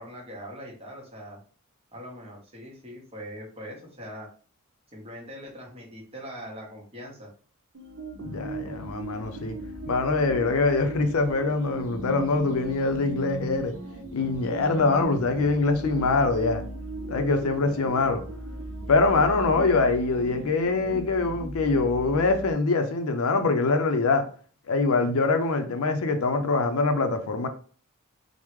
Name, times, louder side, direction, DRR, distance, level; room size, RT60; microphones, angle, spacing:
voice 1, 0.0-1.4 1.9-4.3 4.9-7.3 18.0-18.3, equal, 25° right, 0.9 m, -41 dB
sound 1, 7.7-22.5, right 1 dB, 70° right, 0.7 m, -37 dB
voice 2, 8.2-9.5 9.9-13.7 14.1-16.6 17.1-18.2 18.9-24.2 24.7-27.5, left 3 dB, 80° left, 0.5 m, -24 dB
3.5 x 2.1 x 3.0 m
head